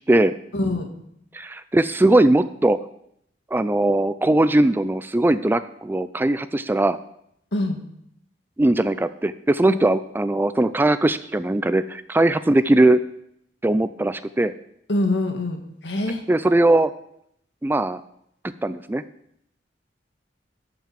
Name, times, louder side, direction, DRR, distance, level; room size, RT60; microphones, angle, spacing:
voice 1, 0.5-0.9 7.5-7.8 9.7-9.8 14.9-16.2, left 2 dB, 70° left, 5 dB, 1.6 m, -24 dB
voice 2, 1.3-2.8 3.5-7.0 8.6-13.0 13.6-14.5 16.3-16.9 17.6-18.0 18.6-19.0, right 1 dB, 10° right, 13 dB, 0.3 m, -19 dB
12.5 x 5.8 x 7.4 m, 0.74 s
head